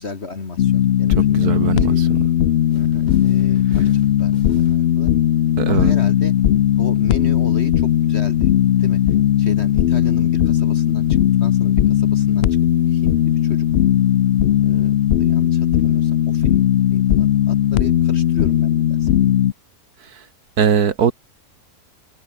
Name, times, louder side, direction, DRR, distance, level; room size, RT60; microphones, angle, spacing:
voice 1, 0.0-2.0 2.7-3.9 4.2-5.1 5.7-6.3 6.8-8.5 8.8-9.0 9.4-12.6 12.9-13.7 14.6-16.7 16.9-19.4, left 4 dB, 40° left, 2.0 m, -33 dB
sound 1, 0.6-19.5, left 11 dB, 70° left, 0.6 m, -17 dB
voice 2, 1.3-2.2 5.6-5.9 20.1-20.2 20.6-21.1, right 7 dB, 65° right, 2.0 m, -20 dB
sound 2, 2.7-5.1, right 2 dB, 25° right, 4.1 m, -44 dB
omnidirectional pair, 1.7 m